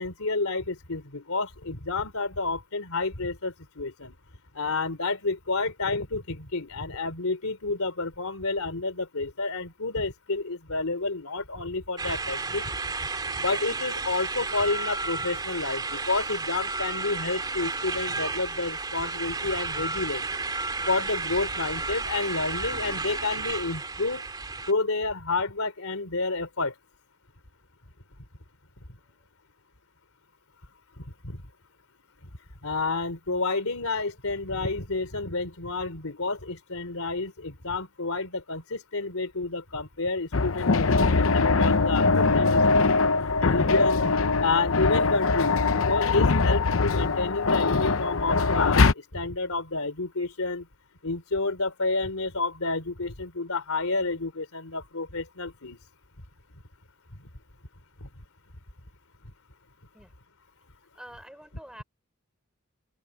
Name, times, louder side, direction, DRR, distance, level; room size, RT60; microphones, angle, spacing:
voice 1, 0.0-4.1 4.6-12.6 13.3-20.3 20.9-24.2 24.7-26.7 31.0-31.4 32.6-43.0 43.4-44.1 44.4-48.9 49.1-50.7 51.0-55.8 58.0-58.1, left 3 dB, 90° left, 3.5 m, -30 dB
sound 1, 12.0-24.7, right 3 dB, 20° right, 2.7 m, -32 dB
sound 2, 40.3-48.9, left 3 dB, 70° left, 0.8 m, -22 dB
voice 2, 60.9-61.8, equal, 5° right, 4.3 m, -46 dB
open air
head